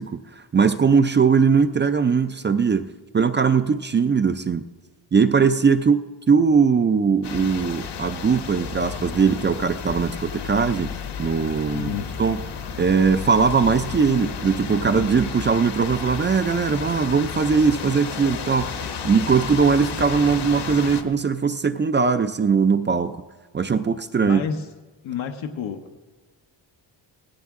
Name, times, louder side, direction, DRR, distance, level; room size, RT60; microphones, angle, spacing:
voice 1, 0.0-2.9 3.1-4.6 5.1-6.0 6.3-10.9 11.2-11.9 12.2-12.4 12.8-18.7 19.0-23.2 23.5-24.4, right 5 dB, 25° right, 10 dB, 0.3 m, -20 dB
sound 1, 7.2-21.0, left 6 dB, 60° left, 1.2 m, -32 dB
voice 2, 11.7-12.1 24.2-24.7 25.0-25.8, left 7 dB, 85° left, 3 dB, 1.0 m, -29 dB
18.0 x 15.0 x 3.6 m, 1.3 s
wide cardioid pair, 155°, 46 cm